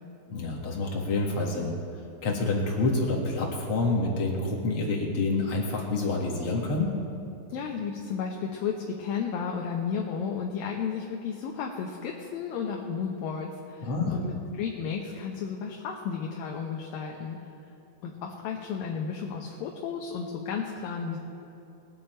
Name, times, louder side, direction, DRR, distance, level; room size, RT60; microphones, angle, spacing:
voice 1, 0.3-1.7 2.2-6.9 13.8-14.2, left 3 dB, 45° left, -2 dB, 1.8 m, -27 dB
voice 2, 7.5-17.4 18.0-21.2, left 6 dB, 70° left, 0 dB, 2.4 m, -33 dB
21.5 x 8.7 x 4.4 m, 2.9 s
omnidirectional pair, 4.5 m